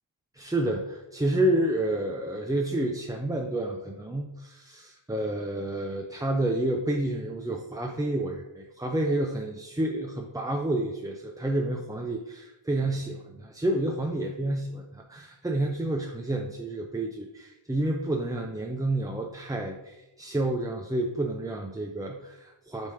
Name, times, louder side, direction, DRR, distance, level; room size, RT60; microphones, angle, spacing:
voice 1, 0.3-22.9, right 1 dB, 10° right, 1 dB, 0.4 m, -29 dB
5.3 x 4.3 x 4.8 m, 0.99 s
wide cardioid pair, 100°, 50 cm